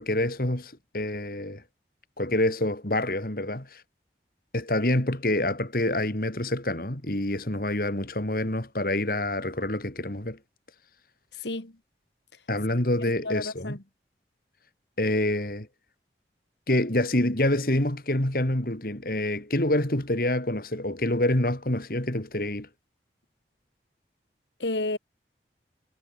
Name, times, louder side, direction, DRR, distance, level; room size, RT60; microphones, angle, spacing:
voice 1, 0.0-1.6 2.2-3.8 4.5-10.4 12.5-13.8 15.0-15.7 16.7-22.7, left 1 dB, 55° left, 2.8 m, -27 dB
voice 2, 11.4-11.7 13.2-13.8 24.6-25.0, left 2 dB, 85° left, 2.5 m, -31 dB
head